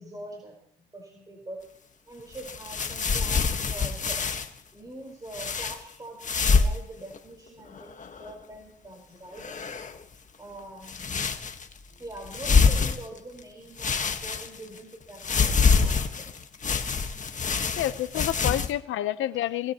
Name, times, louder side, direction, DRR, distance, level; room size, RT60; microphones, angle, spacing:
voice 1, 0.0-1.6 2.1-4.2 4.7-9.6 10.4-11.5 11.9-16.3, right 1 dB, 20° right, 0 dB, 4.9 m, -44 dB
sound 1, 2.3-4.5 5.3-5.8 6.2-6.8 7.1-7.2 7.7-8.3 9.4-10.0 10.8-11.7 12.2-13.4 13.8-14.8 15.2-18.7, left 5 dB, 40° left, 1.6 m, -25 dB
voice 2, 17.8-19.7, left 12 dB, 85° left, 12 dB, 1.0 m, -28 dB
22.0 x 20.5 x 3.1 m, 0.67 s
cardioid pair, 90°, 20 cm